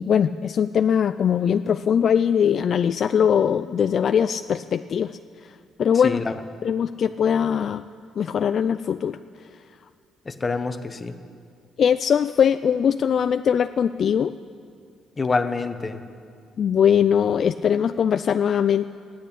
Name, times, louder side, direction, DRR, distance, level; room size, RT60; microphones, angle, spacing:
voice 1, 0.0-5.1 5.8-6.2 6.6-7.8 8.2-9.2 11.8-14.3 16.6-18.9, left 8 dB, 50° left, 11 dB, 0.3 m, -21 dB
voice 2, 10.3-11.1 15.2-16.0, left 4 dB, 25° left, 10 dB, 0.8 m, -26 dB
14.5 x 10.0 x 8.5 m, 2.3 s
cardioid pair, 120°, 0 cm